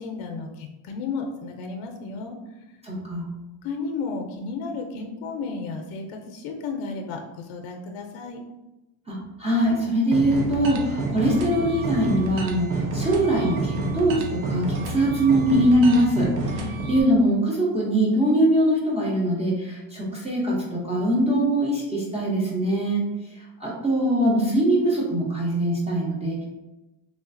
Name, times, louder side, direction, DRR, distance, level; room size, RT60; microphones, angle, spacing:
voice 1, 0.0-2.4 3.6-8.4 16.5-16.8, left 4 dB, 75° left, 3 dB, 0.6 m, -33 dB
voice 2, 2.8-3.3 9.1-16.5 16.9-23.1 23.3-26.4, right 1 dB, 15° right, -5 dB, 0.4 m, -22 dB
sound 1, 10.1-17.0, right 2 dB, 70° right, 0.6 m, -29 dB
3.1 x 2.3 x 2.5 m, 1.0 s
cardioid pair, 140°, 50 cm